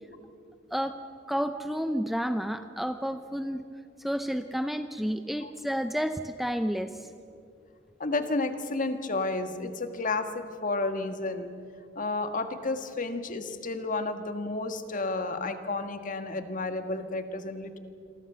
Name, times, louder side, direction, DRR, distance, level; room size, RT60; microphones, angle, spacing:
voice 1, 0.7-1.0 1.3-3.6 4.0-7.0, equal, ahead, 8 dB, 0.6 m, -30 dB
voice 2, 8.0-11.6 11.9-17.8, left 3 dB, 45° left, 7 dB, 1.6 m, -31 dB
27.5 x 23.0 x 6.8 m, 2.4 s
head